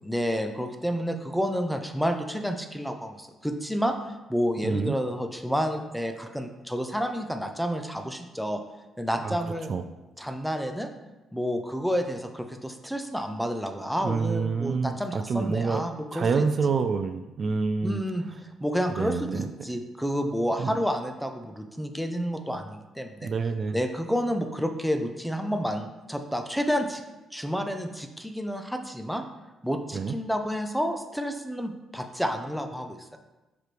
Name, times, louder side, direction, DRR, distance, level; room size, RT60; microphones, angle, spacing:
voice 1, 0.0-3.9 4.3-8.6 9.0-9.7 10.2-10.9 11.3-16.4 17.8-18.2 18.6-23.3 23.7-27.0 27.3-29.2 29.6-33.2, equal, ahead, 6 dB, 0.6 m, -30 dB
voice 2, 4.6-4.9 9.2-9.4 9.7-9.8 14.0-18.0 19.0-19.5 20.6-20.8 23.2-23.8 29.9-30.1, right 5 dB, 50° right, 8 dB, 0.3 m, -27 dB
6.0 x 4.7 x 3.3 m, 1.1 s
cardioid pair, 90°, 0 cm